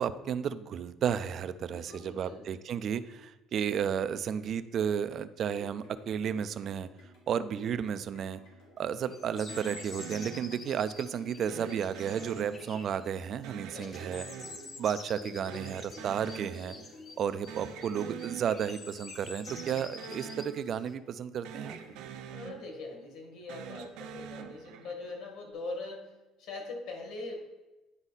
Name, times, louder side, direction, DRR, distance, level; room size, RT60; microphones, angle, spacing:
voice 1, 0.0-6.9 7.3-8.4 8.8-14.3 14.8-16.8 17.2-21.8, right 8 dB, 40° right, 13 dB, 0.3 m, -33 dB
voice 2, 1.6-2.5 13.7-14.2 22.3-27.4, left 3 dB, 60° left, 2 dB, 1.7 m, -42 dB
sound 1, 5.4-22.3 22.9-23.0, left 3 dB, 85° left, 2.5 m, -54 dB
sound 2, 9.1-20.9, left 4 dB, 25° left, 0.6 m, -48 dB
sound 3, 9.5-11.0 11.5-13.0 13.4-15.2 15.5-17.0 17.3-19.0 19.4-21.2 21.4-23.0 23.4-25.2, right 8 dB, 75° right, 0.6 m, -45 dB
9.7 x 4.9 x 4.1 m, 1.1 s
cardioid pair, 170°, 0 cm